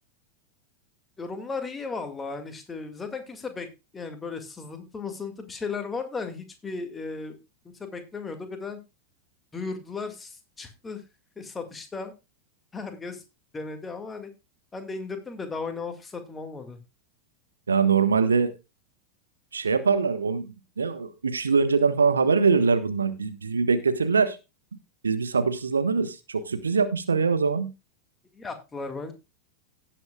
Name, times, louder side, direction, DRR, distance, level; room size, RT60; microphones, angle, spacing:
voice 1, 1.2-3.7 3.9-7.4 7.8-8.8 9.5-11.0 11.4-12.1 12.7-13.2 13.5-14.3 14.7-16.8 28.3-29.1, left 4 dB, 15° left, 6 dB, 2.0 m, -35 dB
voice 2, 17.7-18.5 19.5-24.4 25.0-27.7, right 5 dB, 75° right, 11 dB, 1.1 m, -23 dB
17.5 x 7.8 x 2.3 m, 0.26 s
figure-of-eight pair, 90°, 0 cm